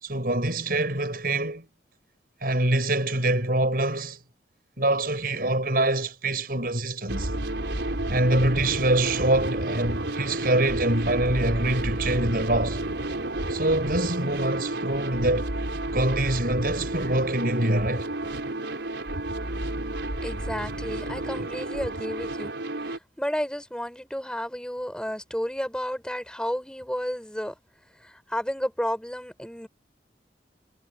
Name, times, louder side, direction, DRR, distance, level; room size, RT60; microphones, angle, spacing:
voice 1, 0.0-1.7 2.4-4.2 4.8-7.3 8.1-12.8 13.5-15.6 15.9-18.1, right 1 dB, 55° right, 7.5 m, -25 dB
sound 1, 7.1-23.0, right 1 dB, 75° right, 4.3 m, -31 dB
voice 2, 20.2-22.5 22.8-27.5 28.0-29.7, equal, 5° left, 5.8 m, -32 dB
head